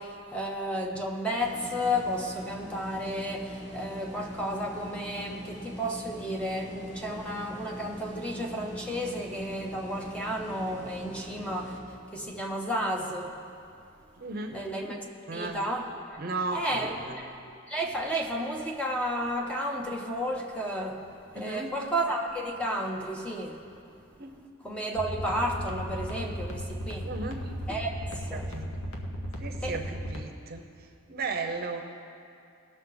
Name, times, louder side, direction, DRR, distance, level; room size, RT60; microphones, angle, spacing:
voice 1, 0.0-11.8 12.1-13.3 14.5-15.0 15.3-15.8 16.1-16.2 16.5-21.0 21.3-23.6 24.6-27.1 27.7-28.0 28.3-28.5 29.6-29.8, equal, 5° left, 1 dB, 0.6 m, -32 dB
sound 1, 1.4-11.8, equal, 30° left, 2.9 m, -42 dB
voice 2, 14.2-14.6 15.3-15.6 16.2-17.2 21.4-21.7 24.2-24.3 27.0-27.5 28.3-28.7 29.4-30.6 31.1-31.8, right 3 dB, 45° right, 5 dB, 0.7 m, -35 dB
sound 2, 24.9-30.2, equal, 70° left, 1.0 m, -35 dB
17.5 x 6.4 x 3.9 m, 2.5 s
head